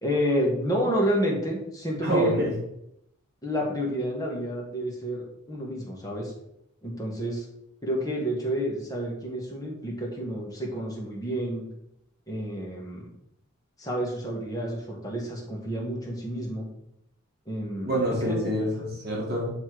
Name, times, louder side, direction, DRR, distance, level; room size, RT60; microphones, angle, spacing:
voice 1, 0.0-2.3 3.4-6.3 6.8-7.4 7.8-11.6 12.3-13.1 13.8-16.7 17.5-17.9 18.2-18.4, equal, 15° left, -2 dB, 1.4 m, -29 dB
voice 2, 2.0-2.5 17.9-19.5, equal, 50° right, -3 dB, 1.7 m, -26 dB
8.0 x 3.2 x 4.7 m, 0.78 s
head